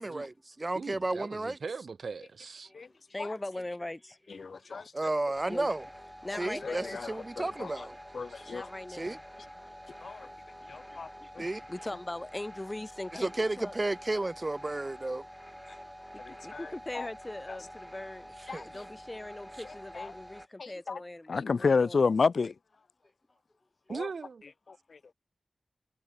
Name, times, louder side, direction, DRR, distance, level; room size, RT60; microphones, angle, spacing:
voice 1, 0.0-1.6 4.9-5.8 6.4-8.0 8.9-9.2 11.4-11.6 13.2-15.2 18.5-18.7, right 2 dB, 35° right, 1.7 m, -32 dB
voice 2, 0.7-2.7 8.3-8.4 23.9-24.4, right 5 dB, 85° right, 3.9 m, -40 dB
voice 3, 2.6-4.9 5.5-5.7 6.2-7.0 8.4-9.2 10.0-10.3 10.6-13.7 16.1-18.3 18.6-22.1, left 1 dB, 25° left, 2.3 m, -41 dB
voice 4, 4.3-4.9 6.4-7.9 8.1-8.7 10.0-10.3 10.7-11.1 11.3-11.4 16.2-16.7 16.9-17.1 17.5-17.6 18.5-18.8 19.9-20.1 20.6-21.0 21.3-22.5 23.9-24.1 24.7-25.0, left 4 dB, 80° left, 1.3 m, -31 dB
sound 1, 5.3-20.5, equal, ahead, 6.7 m, -48 dB
cardioid pair, 50°, 0 cm